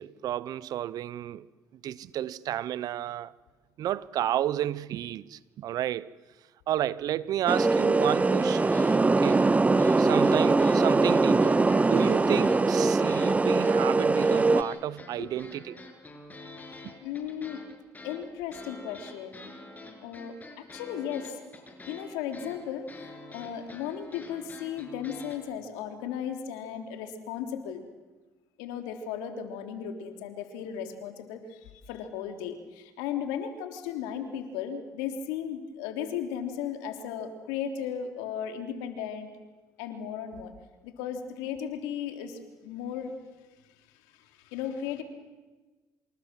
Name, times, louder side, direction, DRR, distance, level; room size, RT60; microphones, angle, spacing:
voice 1, 0.0-1.5 1.8-3.3 3.8-6.1 6.7-8.7 9.0-9.5 10.0-15.7 16.8-16.9, right 12 dB, 65° right, 1.0 m, -31 dB
sound 1, 7.5-14.6, right 3 dB, 20° right, 1.0 m, -22 dB
sound 2, 8.6-9.0 9.2-13.3 13.6-25.4, left 2 dB, 25° left, 7.6 m, -46 dB
voice 2, 17.0-17.6 18.0-19.5 20.0-21.4 21.9-27.8 28.6-39.3 39.8-40.5 40.8-43.2 44.1-45.0, left 8 dB, 90° left, 3.4 m, -36 dB
27.5 x 27.5 x 7.7 m
supercardioid pair, 70°, 7 cm